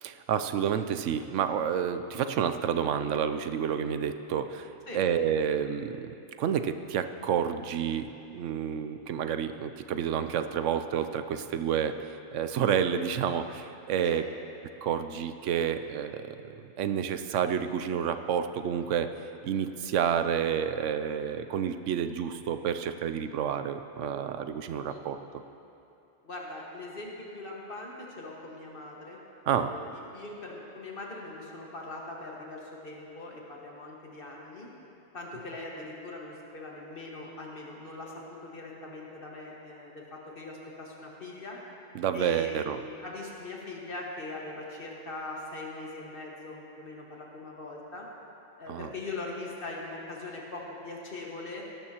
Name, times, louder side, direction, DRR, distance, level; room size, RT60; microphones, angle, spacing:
voice 1, 0.0-4.7 4.9-14.2 14.8-19.1 19.4-25.2 29.5-29.7 41.9-42.8 48.7-48.9, right 8 dB, 75° right, 9 dB, 0.9 m, -29 dB
voice 2, 26.2-29.2 29.5-34.7 35.1-41.6 42.1-48.1 48.6-51.7, left 2 dB, 45° left, -2 dB, 1.8 m, -41 dB
17.0 x 12.5 x 2.9 m, 2.8 s
omnidirectional pair, 1.3 m